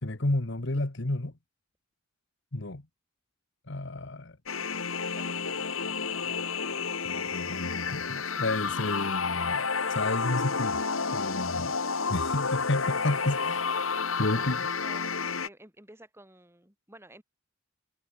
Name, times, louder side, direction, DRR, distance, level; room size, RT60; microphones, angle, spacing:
voice 1, 0.0-1.3 2.5-2.8 3.7-4.4 7.0-10.8 11.1-11.7 12.1-13.7 14.2-14.7, left 2 dB, 60° left, 1.6 m, -31 dB
sound 1, 4.5-15.5, left 5 dB, 85° left, 2.3 m, -30 dB
voice 2, 14.2-15.0 15.4-17.2, right 1 dB, 10° right, 6.7 m, -52 dB
head